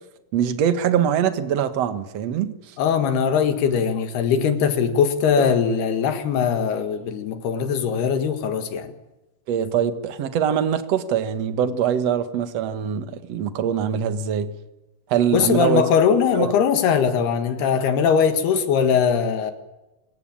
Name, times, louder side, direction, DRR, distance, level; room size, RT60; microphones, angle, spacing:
voice 1, 0.3-2.5 5.4-5.5 9.5-14.5 15.1-15.8 16.3-16.5, right 8 dB, 60° right, 1.8 m, -23 dB
voice 2, 2.8-8.9 15.3-19.5, left 7 dB, 70° left, 3.6 m, -20 dB
27.5 x 18.0 x 8.9 m
omnidirectional pair, 4.9 m